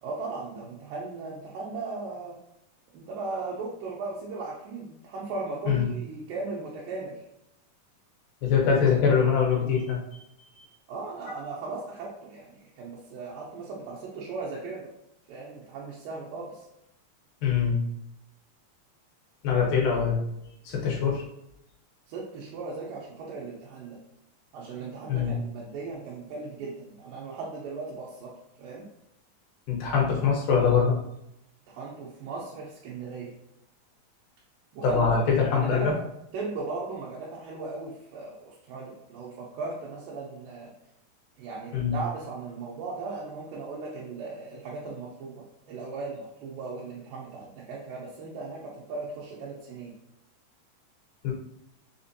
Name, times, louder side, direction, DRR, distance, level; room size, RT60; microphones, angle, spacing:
voice 1, 0.0-2.4 2.9-7.2 10.9-14.9 15.3-16.7 22.1-24.0 24.5-28.8 31.7-33.3 34.7-35.2 35.5-35.9 36.3-40.7 41.4-49.9, right 3 dB, 85° right, -5 dB, 2.4 m, -37 dB
voice 2, 8.4-10.0 17.4-17.8 19.4-20.2 20.7-21.2 25.1-25.4 29.7-31.0 34.8-35.9 41.7-42.0 51.2-51.3, left 6 dB, 85° left, -2 dB, 2.6 m, -23 dB
5.9 x 2.5 x 2.6 m, 0.82 s
omnidirectional pair, 3.9 m